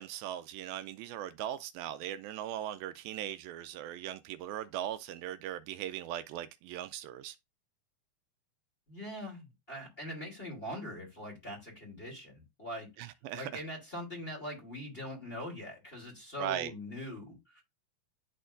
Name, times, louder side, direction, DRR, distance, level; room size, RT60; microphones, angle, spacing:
voice 1, 0.0-7.4 13.0-13.6 16.4-16.7, right 11 dB, 85° right, 2.3 m, -39 dB
voice 2, 8.9-12.9 13.3-17.6, equal, 15° left, 2.5 m, -42 dB
11.0 x 4.4 x 2.5 m
omnidirectional pair, 4.3 m